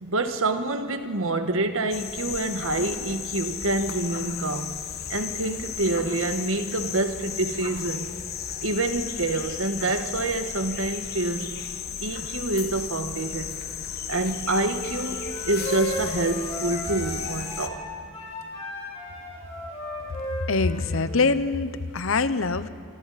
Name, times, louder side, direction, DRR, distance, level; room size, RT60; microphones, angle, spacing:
voice 1, 0.0-4.8 5.1-8.1 8.6-11.6 12.0-13.5 14.1-17.8, right 2 dB, 70° right, 8 dB, 1.4 m, -27 dB
sound 1, 1.9-17.7, left 8 dB, 45° left, 1.1 m, -34 dB
sound 2, 14.8-21.3, left 1 dB, 30° left, 7.3 m, -36 dB
voice 2, 20.5-22.7, left 4 dB, 70° left, 13 dB, 0.8 m, -24 dB
25.5 x 25.0 x 4.2 m, 2.5 s
head